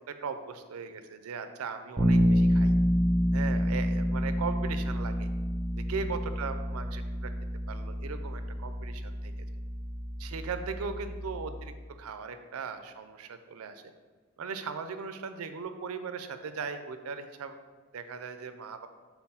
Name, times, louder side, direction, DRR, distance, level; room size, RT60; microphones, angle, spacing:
voice 1, 0.2-2.7 3.3-5.3 5.7-7.3 7.7-9.3 10.2-13.8 14.4-17.6 17.9-18.9, right 5 dB, 85° right, 9 dB, 0.4 m, -38 dB
Bass guitar, 2.0-11.8, equal, 20° right, 0.6 m, -28 dB
4.4 x 4.0 x 5.6 m, 1.4 s
head